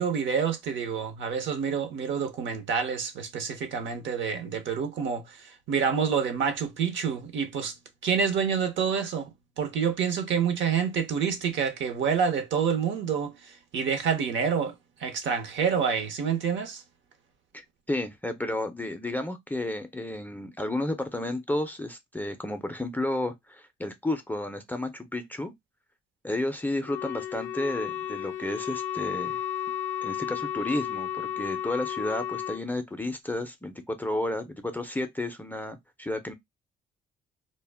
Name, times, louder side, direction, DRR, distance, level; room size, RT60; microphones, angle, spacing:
voice 1, 0.0-7.7 8.0-14.7 15.0-16.8, right 6 dB, 70° right, 0.7 m, -28 dB
voice 2, 17.5-25.5 26.2-29.4 30.0-36.3, left 1 dB, 10° left, 0.4 m, -32 dB
Wind instrument woodwind instrument, 26.8-32.6, left 10 dB, 80° left, 0.4 m, -33 dB
2.1 x 2.0 x 3.2 m
cardioid pair, 90°, 20 cm